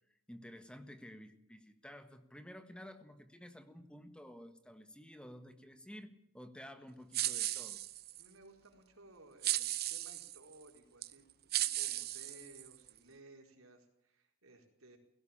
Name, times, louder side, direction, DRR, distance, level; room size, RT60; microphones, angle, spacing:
voice 1, 0.3-7.8, equal, 5° left, 9 dB, 1.5 m, -52 dB
sound 1, 7.1-8.3 9.4-10.4 11.0-11.1 11.5-12.9, right 14 dB, 50° right, 0.8 m, -36 dB
voice 2, 8.2-15.0, right 2 dB, 90° right, 3 dB, 4.6 m, -59 dB
17.5 x 17.0 x 8.8 m, 0.77 s
head